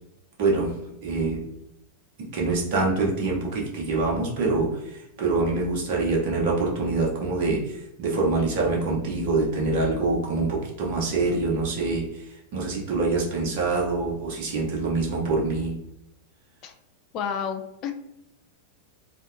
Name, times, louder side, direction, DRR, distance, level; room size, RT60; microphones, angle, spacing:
voice 1, 0.4-0.7 1.0-1.4 2.3-15.7, right 3 dB, 50° right, -2 dB, 0.6 m, -25 dB
voice 2, 17.1-17.9, left 7 dB, 35° left, 6 dB, 0.3 m, -30 dB
2.6 x 2.1 x 2.4 m, 0.83 s
figure-of-eight pair, 90°, 0 cm